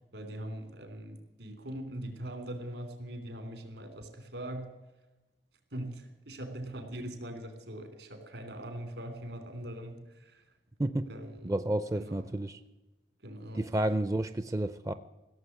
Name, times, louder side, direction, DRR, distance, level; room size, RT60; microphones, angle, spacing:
voice 1, 0.1-4.7 5.7-10.4 11.1-11.6 11.9-12.3 13.2-13.7, right 1 dB, 80° right, 6 dB, 3.2 m, -41 dB
voice 2, 11.4-12.6 13.5-14.9, right 1 dB, 20° right, 13 dB, 0.4 m, -31 dB
16.0 x 7.4 x 9.4 m, 1.1 s
head